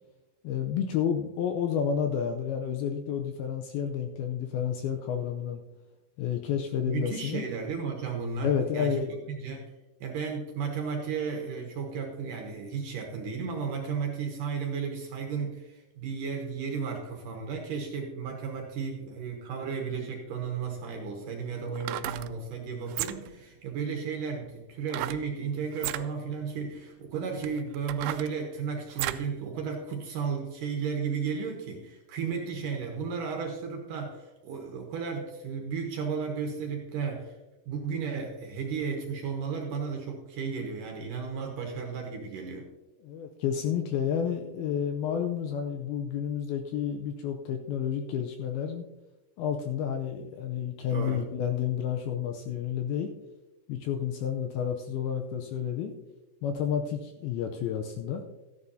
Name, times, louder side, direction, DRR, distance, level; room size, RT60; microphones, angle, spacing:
voice 1, 0.4-5.6 6.2-7.5 8.4-9.2 9.5-9.6 43.0-48.8 49.4-53.1 53.7-55.9 56.4-58.2, left 8 dB, 80° left, 4 dB, 2.3 m, -30 dB
voice 2, 6.8-9.0 9.3-9.7 10.0-37.4 37.7-42.7 50.9-51.2, right 5 dB, 65° right, 2 dB, 2.2 m, -34 dB
sound 1, 20.5-20.6 21.7-22.3 22.9-23.4 24.9-25.3 25.7-26.1 26.8-26.9 27.4-29.3 29.7-29.8, right 15 dB, 90° right, 2.7 m, -34 dB
14.0 x 10.5 x 2.7 m, 1.1 s
omnidirectional pair, 4.9 m